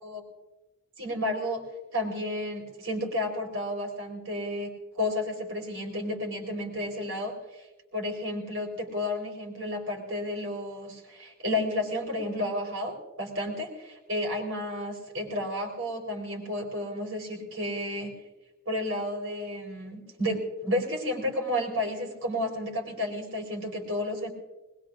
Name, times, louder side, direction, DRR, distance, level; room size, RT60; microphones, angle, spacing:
voice 1, 1.0-1.6 1.9-7.7 7.9-18.1 18.7-24.3, left 1 dB, 75° right, 0 dB, 4.2 m, -32 dB
21.0 x 21.0 x 2.5 m, 1.1 s
head